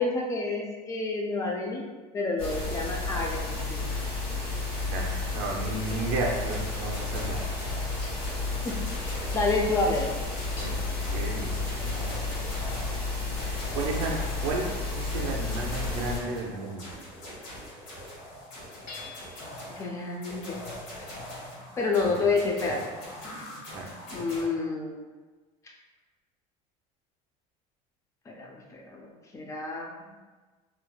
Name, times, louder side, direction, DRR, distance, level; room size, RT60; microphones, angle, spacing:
voice 1, 0.0-1.8 2.1-3.9 8.6-10.1 19.7-20.6 21.8-22.9 24.1-25.0 28.3-30.0, left 3 dB, 20° left, 0 dB, 0.4 m, -29 dB
sound 1, 2.4-16.2, left 3 dB, 40° left, 1.2 m, -32 dB
voice 2, 4.8-7.4 10.6-10.7 11.1-12.5 13.4-16.9 22.1-22.3 23.6-23.9, right 3 dB, 75° right, -1 dB, 0.5 m, -33 dB
sound 2, 5.9-24.4, left 1 dB, 80° left, 1.3 m, -43 dB
Hammer / Chink clink, 18.9-19.7, left 4 dB, 60° left, 1.0 m, -44 dB
3.2 x 2.3 x 2.2 m, 1.3 s
cardioid pair, 145°, 15 cm